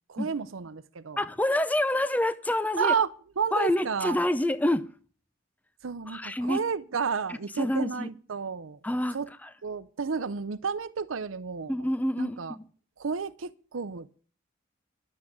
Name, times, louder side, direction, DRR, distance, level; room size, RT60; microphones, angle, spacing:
voice 1, 0.1-1.2 2.8-3.1 3.4-4.2 5.8-8.8 9.1-9.3 9.6-11.7 12.2-12.6 13.0-14.2, right 6 dB, 90° right, 0.7 m, -31 dB
voice 2, 1.2-2.9 3.5-4.8 6.1-6.6 7.6-8.1 8.8-9.2 9.4-9.5 11.7-12.7, left 1 dB, 10° left, 0.6 m, -27 dB
12.0 x 7.4 x 8.5 m
head